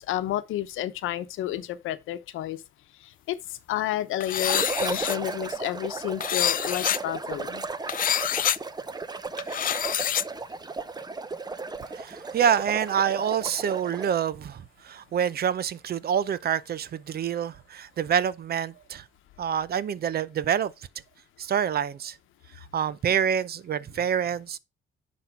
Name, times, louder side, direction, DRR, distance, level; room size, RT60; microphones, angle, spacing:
voice 1, 0.0-2.6 3.0-7.7, left 13 dB, 85° left, 0.9 m, -31 dB
sound 1, 4.2-5.2 6.2-7.0 7.9-8.6 9.4-10.2, left 10 dB, 45° left, 0.4 m, -26 dB
sound 2, 4.4-14.3, right 4 dB, 20° right, 0.7 m, -35 dB
voice 2, 11.8-19.0 19.4-20.7 21.4-22.2 22.7-24.6, right 8 dB, 50° right, 0.6 m, -27 dB
10.0 x 4.3 x 4.6 m
cardioid pair, 90°, 20 cm